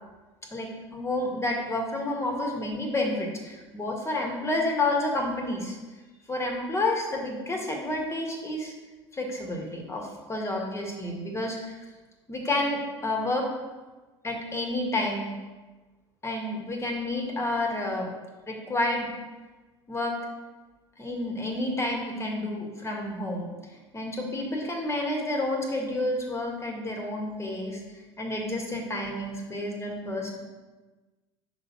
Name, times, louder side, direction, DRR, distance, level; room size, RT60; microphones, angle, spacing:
voice 1, 0.5-5.8 6.3-8.7 9.1-11.8 12.3-13.5 14.2-15.3 16.2-18.1 18.5-19.1 19.9-20.2 21.0-23.5 23.9-27.8 28.2-30.4, left 1 dB, 20° left, 1 dB, 1.6 m, -30 dB
5.4 x 4.0 x 5.9 m, 1.2 s
figure-of-eight pair, 70°, 15 cm